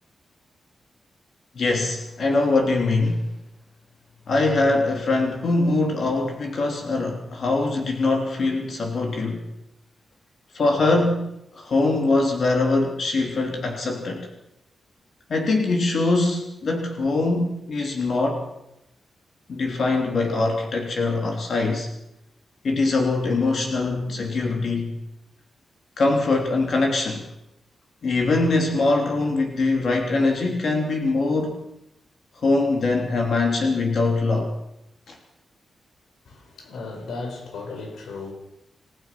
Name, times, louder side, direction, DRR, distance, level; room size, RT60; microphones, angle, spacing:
voice 1, 1.5-3.3 4.3-9.5 10.5-14.3 15.3-18.4 19.5-21.9 22.6-25.0 26.0-27.3 28.0-31.6 32.4-34.5 35.1-35.2, left 3 dB, 50° left, 2 dB, 3.2 m, -22 dB
voice 2, 36.3-38.3, left 3 dB, 80° left, 4 dB, 5.6 m, -35 dB
28.5 x 16.0 x 6.1 m, 0.85 s
wide cardioid pair, 175°, 0 cm